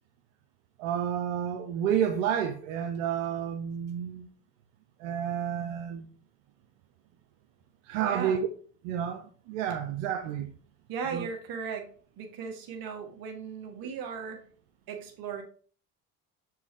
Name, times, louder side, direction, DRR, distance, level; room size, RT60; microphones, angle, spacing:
voice 1, 0.8-4.3 5.0-6.1 7.8-8.4 8.8-10.5 11.1-11.3, right 9 dB, 85° right, 0.7 m, -30 dB
voice 2, 8.0-8.4 10.9-11.9 12.2-14.5 14.9-15.4, right 6 dB, 65° right, 1.8 m, -37 dB
7.0 x 4.5 x 3.7 m
supercardioid pair, 75°, 37 cm